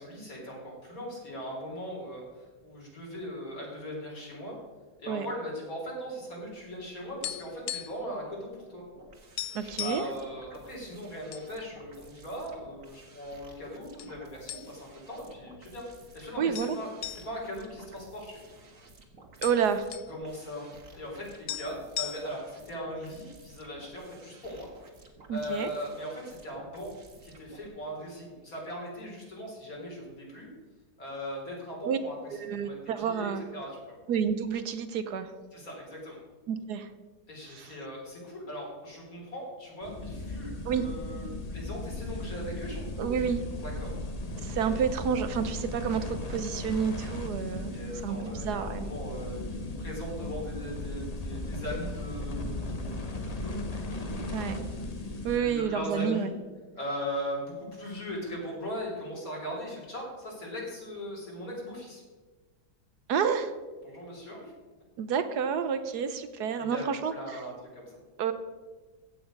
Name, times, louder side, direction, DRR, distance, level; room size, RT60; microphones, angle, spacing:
voice 1, 0.0-4.6 5.0-8.8 9.6-18.4 20.1-24.7 25.3-26.9 27.2-30.5 31.0-34.0 35.5-36.2 37.3-43.3 43.6-44.2 44.6-44.7 47.6-56.3 56.7-62.0 63.8-64.5 66.6-66.8 67.1-67.9, equal, 55° left, -3 dB, 4.2 m, -39 dB
sound 1, 6.7-8.1 8.4-8.6 8.9-9.0 9.4-10.1 10.8-11.5 11.8-12.0 12.7-13.3 14.0-14.2 14.5-15.0 15.4-15.5 16.5-18.6 18.9-19.0 19.2-20.1 21.2-21.3 21.5-22.5, left 12 dB, 75° left, 1.2 m, -38 dB
sound 2, 9.0-27.7, right 3 dB, 50° right, 1.9 m, -54 dB
voice 2, 9.5-10.1 16.4-16.8 19.4-19.9 25.3-25.7 31.8-32.0 32.4-33.4 34.1-35.3 36.5-36.9 37.5-37.7 40.7-40.8 43.0-43.4 44.4-47.7 48.0-48.9 54.3-54.6 55.2-56.3 63.1-63.5 65.0-67.4 68.2-68.3, right 7 dB, 70° right, 10 dB, 1.3 m, -29 dB
sound 3, 39.8-55.4, left 2 dB, 30° left, 0.9 m, -36 dB
15.0 x 8.5 x 5.3 m, 1.3 s
omnidirectional pair, 1.8 m